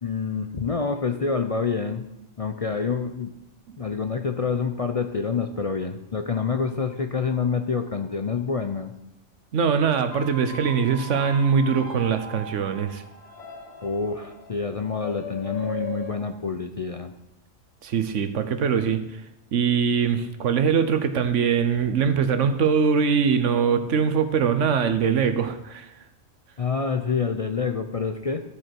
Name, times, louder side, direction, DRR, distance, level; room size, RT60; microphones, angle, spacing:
voice 1, 0.0-2.1 2.4-3.3 3.8-8.9 13.8-17.1 26.6-28.4, left 5 dB, 40° left, 7 dB, 0.5 m, -27 dB
voice 2, 9.5-13.0 17.8-19.2 19.5-25.9, right 6 dB, 80° right, 10 dB, 1.2 m, -22 dB
sound 1, 10.0-16.1, left 1 dB, 60° left, 1.7 m, -38 dB
13.0 x 7.8 x 4.5 m, 0.91 s
omnidirectional pair, 1.2 m